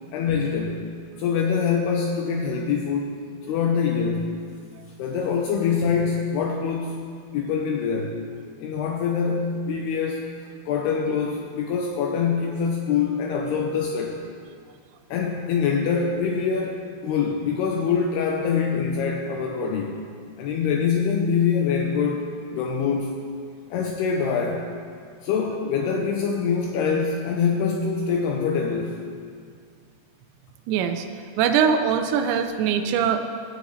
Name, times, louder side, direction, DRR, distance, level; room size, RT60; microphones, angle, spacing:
voice 1, 0.1-0.9 1.2-4.3 5.0-7.0 7.3-8.2 8.6-10.3 10.7-14.2 15.1-19.9 20.4-23.2 23.7-24.7 25.2-29.0, left 6 dB, 90° left, 1 dB, 2.2 m, -24 dB
voice 2, 30.7-31.1 31.4-33.2, right 7 dB, 80° right, 6 dB, 2.7 m, -22 dB
18.0 x 9.3 x 3.2 m, 2.1 s
omnidirectional pair, 5.6 m